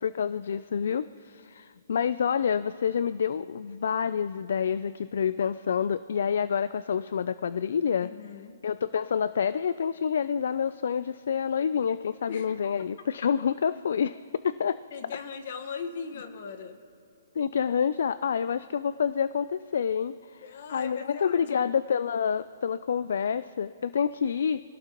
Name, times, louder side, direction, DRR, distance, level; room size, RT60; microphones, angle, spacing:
voice 1, 0.0-8.1 8.6-14.2 14.4-14.8 17.4-24.6, left 7 dB, 65° left, 16 dB, 0.3 m, -28 dB
voice 2, 8.0-8.6 12.3-12.6 14.9-16.8 20.4-21.7, left 6 dB, 50° left, 8 dB, 1.3 m, -39 dB
25.5 x 17.5 x 3.0 m, 2.4 s
hypercardioid pair, 165°, 0 cm